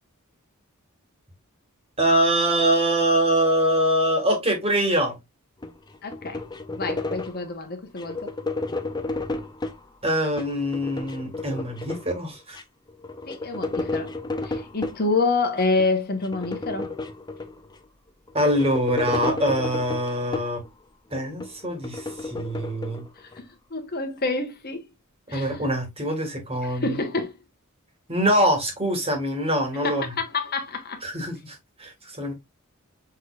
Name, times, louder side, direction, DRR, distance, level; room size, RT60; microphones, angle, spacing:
voice 1, 2.0-5.2 10.0-12.6 18.3-20.6 21.1-23.0 25.3-26.9 28.1-30.1 31.0-32.3, right 1 dB, 25° right, 1.6 m, -24 dB
sound 1, 5.6-7.5 8.0-9.8 10.3-12.2 12.5-12.6 12.9-15.0 15.6-15.9 16.2-17.8 18.3-20.7 21.1-23.4, left 2 dB, 20° left, 0.5 m, -32 dB
voice 2, 6.0-6.4 6.7-8.3 13.3-14.1 14.4-16.9 23.2-24.9 25.3-25.5 26.6-27.4 29.8-31.0, left 3 dB, 45° left, 1.1 m, -27 dB
6.2 x 3.2 x 2.4 m
head